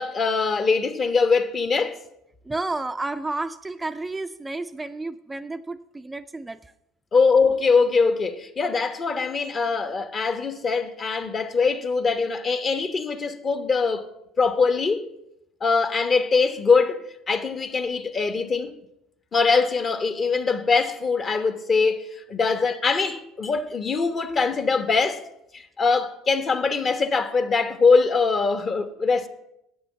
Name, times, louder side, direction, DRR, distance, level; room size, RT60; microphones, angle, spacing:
voice 1, 0.0-2.0 7.1-14.1 14.4-15.1 15.6-18.7 19.3-25.2 25.5-29.3, left 4 dB, 35° left, 1.0 m, -22 dB
voice 2, 2.4-6.7, right 2 dB, 15° right, 0.4 m, -31 dB
8.4 x 6.9 x 6.9 m
hypercardioid pair, 80°, 0 cm